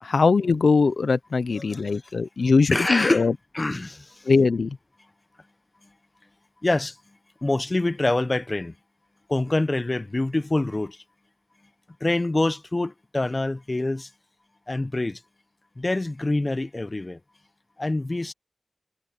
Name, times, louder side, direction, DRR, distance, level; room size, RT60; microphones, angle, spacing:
voice 1, 0.0-3.3 4.3-4.8, left 4 dB, 85° left, 0.7 m, -21 dB
voice 2, 2.7-3.3 3.5-4.1 6.6-6.9 7.4-8.7 9.3-11.0 12.0-14.1 14.7-15.2 15.8-17.2 17.8-18.3, left 2 dB, 40° left, 1.0 m, -25 dB
cardioid pair, 40°, 0 cm